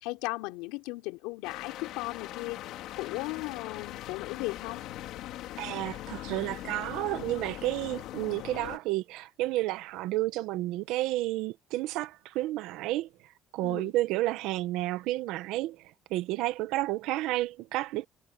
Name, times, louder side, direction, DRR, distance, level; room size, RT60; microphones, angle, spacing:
voice 1, 0.0-2.6 2.9-4.8 13.6-13.9, left 22 dB, 90° left, 4.0 m, -36 dB
sound 1, 1.4-8.8, left 14 dB, 70° left, 2.5 m, -41 dB
voice 2, 5.6-13.1 13.5-15.8 16.1-18.1, right 17 dB, 80° right, 1.5 m, -31 dB
supercardioid pair, 100°, 0 cm